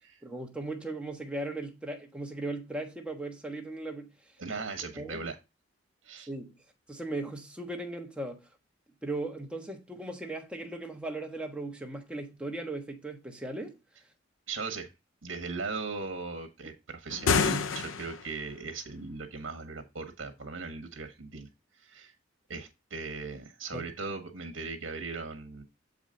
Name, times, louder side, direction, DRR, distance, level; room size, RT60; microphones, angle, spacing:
voice 1, 0.2-4.1 5.0-5.2 6.3-6.5 6.9-8.4 9.0-13.8 23.7-23.9, right 2 dB, 5° right, 1.3 m, -37 dB
voice 2, 4.4-5.4 6.0-6.3 14.5-14.9 15.2-21.5 21.8-22.1 22.5-25.6, right 4 dB, 70° right, 1.3 m, -38 dB
sound 1, 17.1-18.4, left 5 dB, 80° left, 0.5 m, -28 dB
7.2 x 5.0 x 3.8 m
head